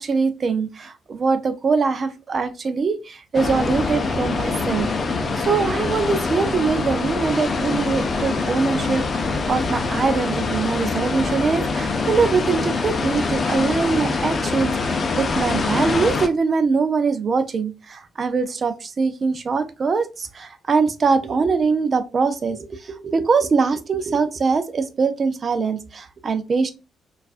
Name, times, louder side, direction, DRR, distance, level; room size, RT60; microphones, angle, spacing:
voice 1, 0.0-4.9 5.4-26.7, right 4 dB, 40° right, 0.5 m, -22 dB
sound 1, 3.3-16.3, left 4 dB, 40° left, 0.5 m, -24 dB
4.5 x 2.5 x 2.4 m
cardioid pair, 90°, 0 cm